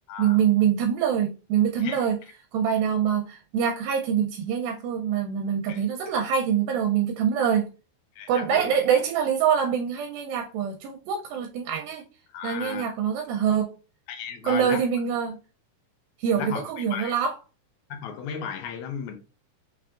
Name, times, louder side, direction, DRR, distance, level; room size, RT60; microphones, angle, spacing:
voice 1, 0.2-2.2 2.5-7.7 8.3-12.0 12.4-13.8 14.4-15.4 16.2-17.4, right 8 dB, 80° right, 2.4 m, -24 dB
voice 2, 8.2-8.7 12.3-12.8 14.1-14.8 16.4-17.2 17.9-19.1, left 7 dB, 70° left, 1.9 m, -35 dB
6.1 x 3.5 x 2.4 m
omnidirectional pair, 4.2 m